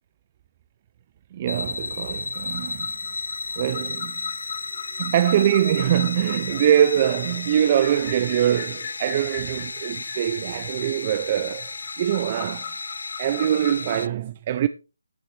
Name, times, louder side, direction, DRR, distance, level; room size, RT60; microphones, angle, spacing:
voice 1, 1.3-2.9 3.6-4.2 5.0-11.7 12.0-12.7 13.2-14.7, right 10 dB, 30° right, 0.4 m, -23 dB
sound 1, 1.5-14.1, left 4 dB, 70° left, 0.4 m, -33 dB
sound 2, 2.3-14.0, left 8 dB, 30° left, 2.3 m, -41 dB
sound 3, 3.5-13.8, right 4 dB, 60° right, 3.3 m, -53 dB
13.5 x 8.3 x 3.3 m
figure-of-eight pair, 160°, 0 cm